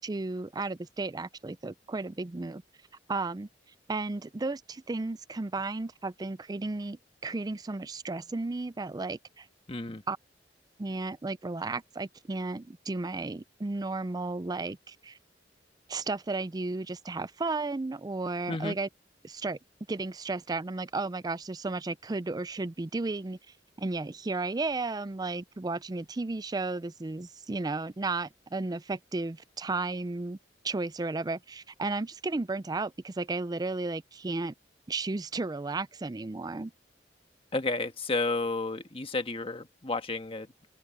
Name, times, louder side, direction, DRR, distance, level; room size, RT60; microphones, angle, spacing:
voice 1, 0.0-2.6 3.1-3.5 3.9-9.5 10.1-10.2 10.8-15.2 15.9-18.9 19.2-19.6 19.9-23.4 23.8-30.4 30.6-34.5 34.9-36.7, right 3 dB, 20° right, 0.4 m, -33 dB
voice 2, 9.7-10.0 18.5-18.7 37.5-40.5, left 3 dB, 30° left, 1.5 m, -31 dB
open air
head